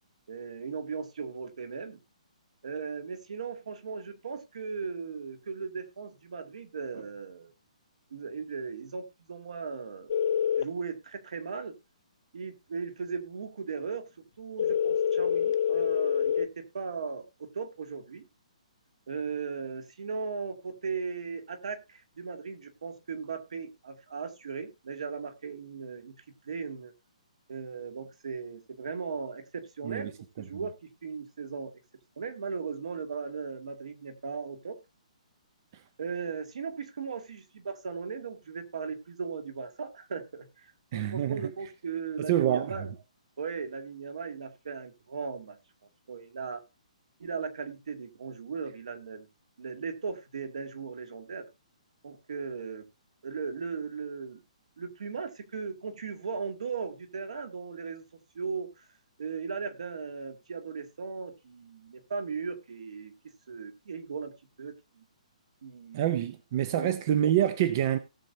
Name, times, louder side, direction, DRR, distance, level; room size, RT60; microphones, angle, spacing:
voice 1, 0.3-2.0 2.6-7.5 8.1-10.1 10.6-11.7 12.3-14.1 14.4-18.3 19.1-26.2 26.5-26.9 27.5-31.7 32.2-34.8 36.0-42.9 43.4-45.6 46.1-46.6 47.2-49.3 49.6-51.5 52.0-52.9 53.2-54.4 54.8-58.0 58.3-58.9 59.2-63.1 63.5-64.3 64.6-65.0 65.6-66.1 66.8-67.0, right 5 dB, 60° right, 2.0 m, -37 dB
sound 1, 10.1-10.6 14.6-16.5, left 8 dB, 40° left, 0.6 m, -26 dB
voice 2, 40.9-41.5 42.2-42.7 65.9-68.0, right 11 dB, 25° right, 0.6 m, -26 dB
18.0 x 6.9 x 2.7 m
hypercardioid pair, 175°, 4 cm